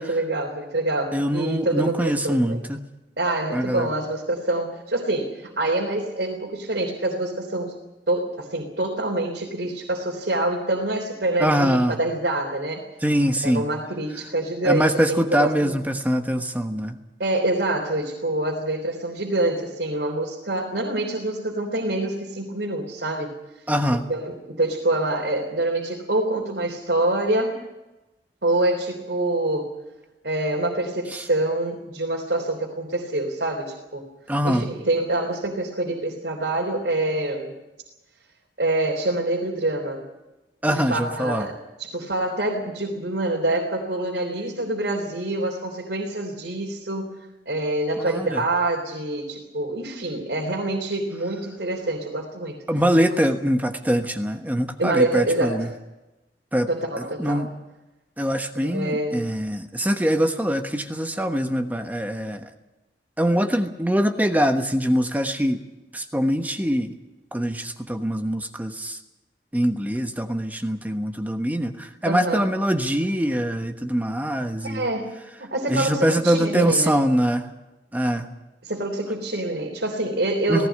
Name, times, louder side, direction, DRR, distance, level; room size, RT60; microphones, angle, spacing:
voice 1, 0.0-2.6 3.2-7.7 8.1-12.8 13.4-15.7 17.2-23.3 23.9-27.6 28.4-29.7 30.2-34.1 34.4-37.5 38.6-40.0 40.7-47.2 47.5-52.6 53.1-53.3 54.8-55.7 56.7-57.5 58.6-59.3 72.1-72.5 74.6-75.1 75.4-77.0 78.6-80.7, right 2 dB, 70° right, -1 dB, 3.5 m, -26 dB
voice 2, 1.1-2.9 3.5-3.9 11.4-12.0 13.0-13.7 14.6-17.0 23.7-24.0 31.1-31.2 34.3-34.7 40.6-41.5 48.1-48.4 52.7-55.7 56.5-56.7 57.0-57.5 58.2-62.5 63.2-65.6 65.9-66.9 67.3-69.0 69.5-74.8 75.7-77.4 77.9-78.3 80.5-80.7, equal, 10° right, 6 dB, 1.2 m, -23 dB
18.5 x 16.5 x 9.5 m, 1.0 s
head